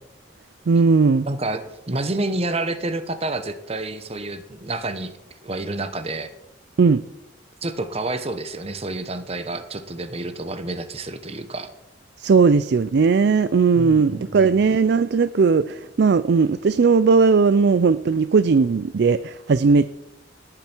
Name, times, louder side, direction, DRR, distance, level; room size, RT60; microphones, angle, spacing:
voice 1, 0.7-1.3 6.8-7.0 12.2-19.9, right 5 dB, 55° right, 14 dB, 0.4 m, -17 dB
voice 2, 1.3-5.2 5.4-6.3 7.6-11.7 13.7-14.5, right 2 dB, 30° right, 10 dB, 0.9 m, -29 dB
18.0 x 8.9 x 4.5 m, 0.93 s
head